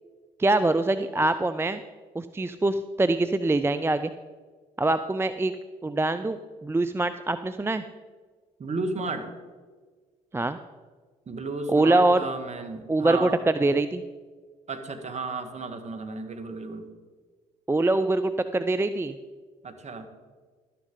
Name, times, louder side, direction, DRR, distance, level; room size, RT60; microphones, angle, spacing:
voice 1, 0.4-1.8 2.1-4.1 4.8-5.5 5.8-7.8 10.3-10.6 11.7-12.3 12.9-14.0 17.7-19.2, right 2 dB, 15° right, 11 dB, 0.5 m, -24 dB
voice 2, 8.6-9.3 11.3-13.4 14.7-16.8 19.6-20.1, right 3 dB, 40° right, 7 dB, 1.6 m, -33 dB
12.5 x 10.0 x 3.8 m, 1.5 s
hypercardioid pair, 55°, 18 cm